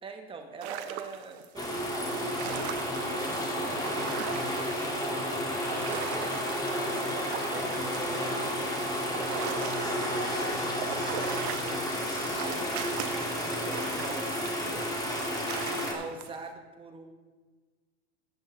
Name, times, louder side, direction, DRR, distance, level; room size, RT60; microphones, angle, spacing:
voice 1, 0.0-2.7 3.6-4.7 5.8-8.6 9.8-10.8 11.6-14.8 15.9-17.1, right 4 dB, 15° right, 4 dB, 1.2 m, -44 dB
sound 1, 0.6-1.5 2.0-5.1 5.3-10.3 10.6-16.4, right 10 dB, 65° right, 1.0 m, -40 dB
sound 2, 1.6-15.9, equal, 10° left, 1.8 m, -31 dB
13.5 x 8.0 x 3.7 m, 1.4 s
supercardioid pair, 140°, 35 cm